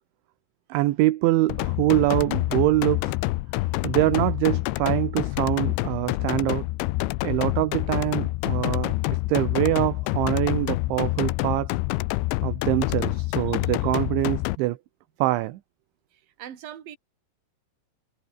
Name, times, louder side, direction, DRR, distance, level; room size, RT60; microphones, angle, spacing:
voice 1, 0.7-3.2 3.5-6.7 7.2-11.7 12.4-14.8 15.2-15.6, right 17 dB, 75° right, 3.2 m, -24 dB
sound 1, 1.5-14.6, left 20 dB, 85° left, 2.7 m, -27 dB
voice 2, 16.1-17.0, right 10 dB, 50° right, 4.0 m, -42 dB
omnidirectional pair, 5.9 m